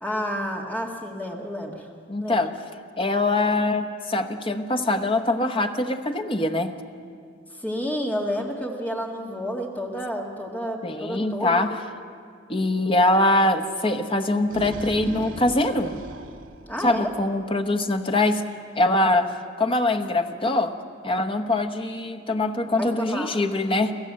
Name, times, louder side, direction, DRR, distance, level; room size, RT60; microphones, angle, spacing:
voice 1, 0.0-1.9 2.2-2.4 7.6-11.7 16.7-17.1 22.6-23.3, equal, 10° left, 0 dB, 1.9 m, -30 dB
voice 2, 2.1-2.5 3.0-6.7 10.8-11.8 12.5-16.0 16.8-18.4 18.8-19.3 19.6-20.7 21.0-23.9, left 2 dB, 25° left, 6 dB, 1.0 m, -23 dB
sound 1, 14.3-17.4, right 1 dB, 90° right, 1.1 m, -38 dB
26.5 x 14.5 x 7.6 m, 2.2 s
head